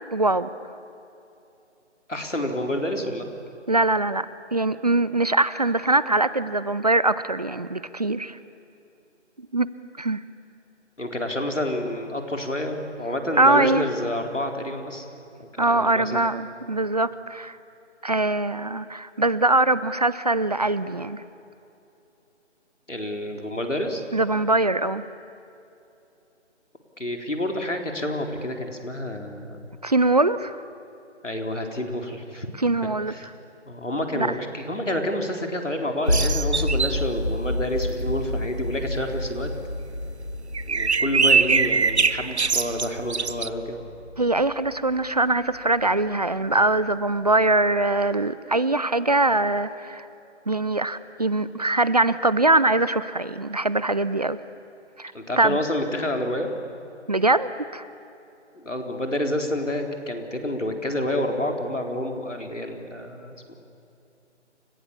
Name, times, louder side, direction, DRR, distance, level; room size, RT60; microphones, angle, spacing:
voice 1, 0.1-0.5 3.7-4.3 4.5-8.4 9.5-9.7 10.0-10.2 13.4-13.9 15.6-17.6 18.0-21.2 24.1-25.1 29.8-30.6 32.6-33.1 34.1-34.3 44.2-50.1 50.5-54.4 55.0-55.6 57.1-57.8, right 2 dB, 35° right, 16 dB, 0.6 m, -22 dB
voice 2, 2.1-3.3 11.0-15.1 15.4-16.2 22.9-24.0 27.0-29.6 31.2-32.5 33.1-33.3 33.7-39.5 40.7-43.8 55.1-56.5 58.5-63.5, left 1 dB, 85° left, 3 dB, 4.2 m, -29 dB
sound 1, 36.1-46.1, left 1 dB, 15° left, 0.6 m, -30 dB
sound 2, 36.1-37.0 40.5-43.5, right 5 dB, 65° right, 0.9 m, -22 dB
29.5 x 26.0 x 7.3 m, 2.8 s
figure-of-eight pair, 155°, 36 cm